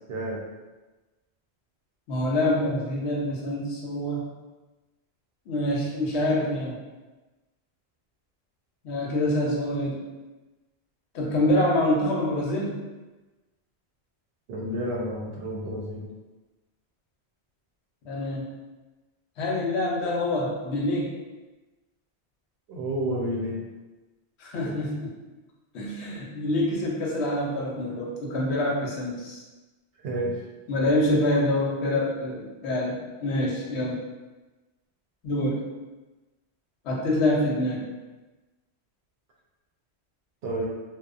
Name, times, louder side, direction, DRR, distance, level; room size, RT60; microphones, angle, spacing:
voice 1, 0.1-0.4 14.5-16.1 22.7-23.6 24.5-24.8 30.0-30.3 40.4-40.7, right 1 dB, 70° right, -3 dB, 0.8 m, -30 dB
voice 2, 2.1-4.3 5.5-6.8 8.8-10.0 11.1-12.8 18.0-18.5 19.4-21.1 24.4-25.1 25.7-29.4 30.7-34.0 35.2-35.6 36.8-37.8, left 1 dB, 80° left, -3 dB, 0.9 m, -26 dB
2.8 x 2.1 x 2.4 m, 1.2 s
omnidirectional pair, 1.1 m